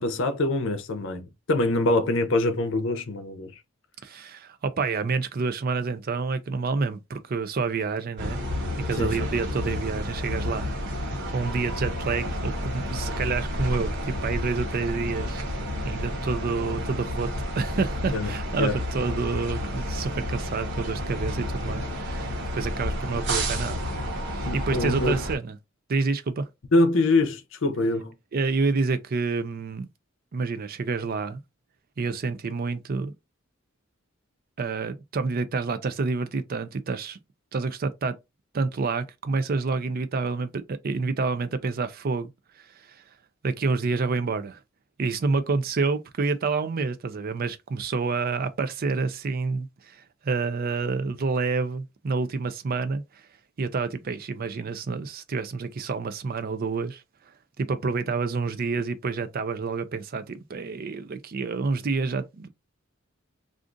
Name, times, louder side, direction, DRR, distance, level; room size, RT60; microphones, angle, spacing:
voice 1, 0.0-3.5 9.0-9.1 18.1-18.8 24.4-25.2 26.7-28.1, left 2 dB, 70° left, 0.6 m, -24 dB
voice 2, 4.0-8.4 8.9-10.7 11.3-15.4 15.8-23.8 24.2-25.6 25.9-26.5 28.3-29.9 30.3-31.4 32.0-33.1 34.6-37.2 37.5-38.2 38.5-42.3 42.6-43.0 43.4-44.6 45.0-53.3 53.6-57.0 57.6-62.5, right 4 dB, 45° right, 0.5 m, -28 dB
sound 1, 8.2-25.4, equal, 65° right, 1.0 m, -30 dB
2.5 x 2.4 x 3.7 m
head